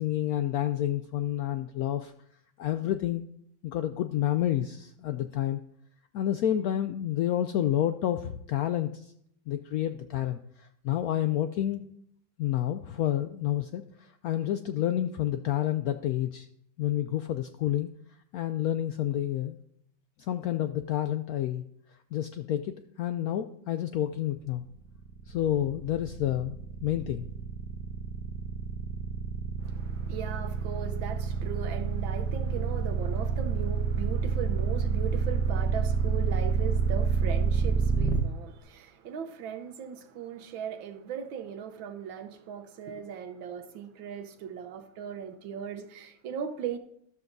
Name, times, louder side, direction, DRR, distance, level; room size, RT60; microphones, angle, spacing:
voice 1, 0.0-2.1 2.6-3.2 3.6-5.6 6.1-9.1 9.5-11.8 12.4-16.5 16.8-17.9 18.3-19.6 20.2-21.6 22.1-24.6 25.3-26.5 26.8-27.3, left 12 dB, 80° left, 8 dB, 0.8 m, -29 dB
sound 1, 24.9-38.2, right 6 dB, 5° left, 0.4 m, -28 dB
voice 2, 29.6-46.8, right 8 dB, 80° right, 8 dB, 1.6 m, -38 dB
13.0 x 12.5 x 2.6 m, 0.71 s
omnidirectional pair, 2.1 m